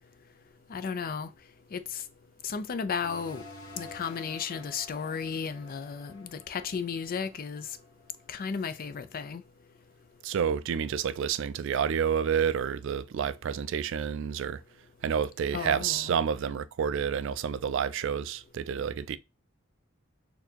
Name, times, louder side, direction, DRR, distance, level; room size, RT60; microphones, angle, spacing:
voice 1, 0.7-1.3 1.7-2.0 2.4-3.4 3.8-7.7 8.3-9.4 15.5-16.1, left 6 dB, 45° left, 0.4 m, -34 dB
sound 1, 3.0-8.2, left 2 dB, 70° left, 1.3 m, -50 dB
voice 2, 10.2-14.6 15.0-19.2, right 7 dB, 65° right, 0.3 m, -29 dB
4.2 x 2.7 x 2.8 m
head